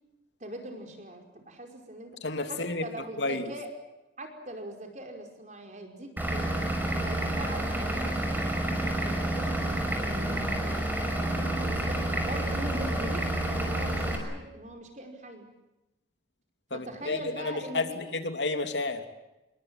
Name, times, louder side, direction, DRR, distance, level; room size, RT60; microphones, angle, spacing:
voice 1, 0.4-2.2 2.5-3.7 4.2-6.5 7.0-8.5 9.0-15.5 16.7-18.0, right 1 dB, 40° right, 4 dB, 5.2 m, -41 dB
voice 2, 2.2-2.8 3.2-3.5 16.7-19.1, left 3 dB, 80° left, 7 dB, 2.9 m, -31 dB
Vehicle / Engine, 6.2-14.2, right 1 dB, 10° right, 5.4 m, -29 dB
28.0 x 21.5 x 7.8 m, 0.99 s
head